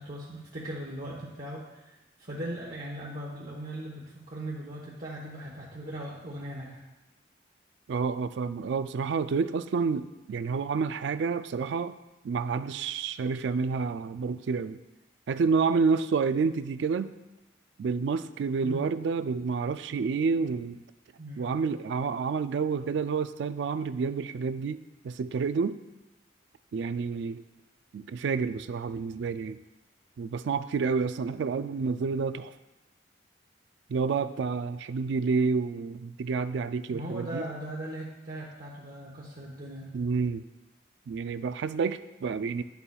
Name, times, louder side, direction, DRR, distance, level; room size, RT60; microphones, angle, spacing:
voice 1, 0.0-6.8 18.6-18.8 21.2-21.5 36.9-39.9, right 1 dB, 50° right, -5 dB, 1.0 m, -39 dB
voice 2, 7.9-12.0 12.2-14.8 15.3-17.1 17.8-20.8 21.4-25.8 26.7-27.4 27.9-29.6 30.2-32.5 33.9-37.4 39.9-40.4 41.1-42.6, right 5 dB, 70° right, 13 dB, 0.3 m, -29 dB
10.5 x 6.9 x 2.3 m, 1.0 s
head